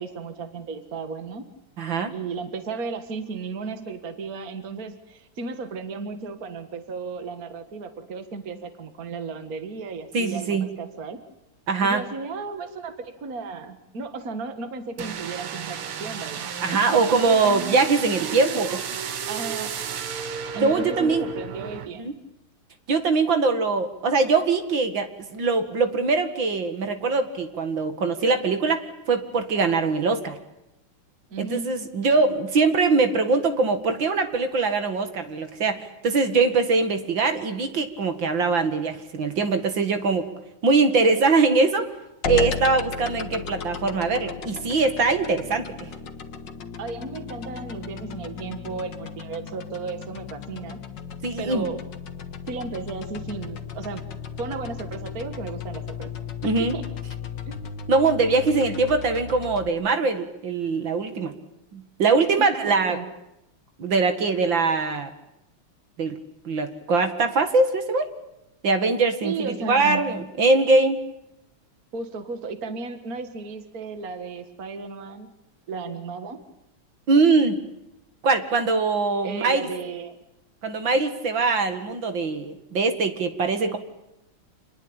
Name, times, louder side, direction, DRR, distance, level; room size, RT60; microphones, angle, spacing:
voice 1, 0.0-1.5 2.1-11.2 11.8-17.4 18.2-18.4 19.3-19.7 20.5-22.1 31.3-31.7 46.8-50.8 51.4-51.8 52.5-54.0 54.4-56.1 56.4-56.8 57.5-57.6 62.4-63.1 69.2-70.1 71.9-75.3 75.7-76.4 79.2-80.1, right 4 dB, 45° right, 8 dB, 2.2 m, -34 dB
voice 2, 1.8-2.1 10.1-10.7 11.7-12.0 16.6-18.8 20.5-21.3 22.0-22.1 22.9-30.4 31.4-40.3 40.6-41.9 42.2-45.9 51.2-51.7 56.4-56.7 57.9-61.3 61.7-63.0 63.8-65.1 66.0-66.2 66.4-68.1 68.6-71.0 77.1-77.6 78.2-79.7 80.6-83.8, right 4 dB, 60° right, 7 dB, 2.7 m, -22 dB
sound 1, 15.0-21.9, right 7 dB, 85° right, 2.4 m, -33 dB
sound 2, 42.2-59.7, left 6 dB, 60° left, 2.2 m, -35 dB
28.0 x 21.0 x 8.9 m, 0.87 s
omnidirectional pair, 2.3 m